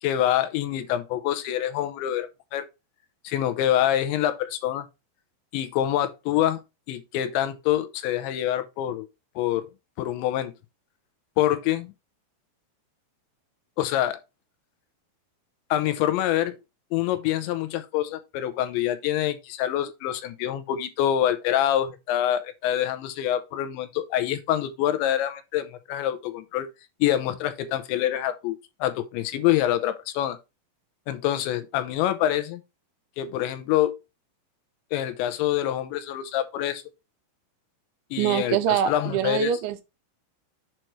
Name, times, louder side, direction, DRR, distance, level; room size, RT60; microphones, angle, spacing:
voice 1, 0.0-2.7 3.2-4.9 5.5-6.6 6.9-9.1 9.4-9.7 10.0-10.5 11.4-11.9 13.8-14.2 15.7-16.6 16.9-26.7 27.0-30.4 31.1-32.6 33.2-34.0 34.9-36.8 38.1-39.5, left 12 dB, 80° left, 3.0 m, -26 dB
voice 2, 38.2-39.8, right 10 dB, 85° right, 3.0 m, -24 dB
7.8 x 5.8 x 3.0 m
omnidirectional pair, 5.5 m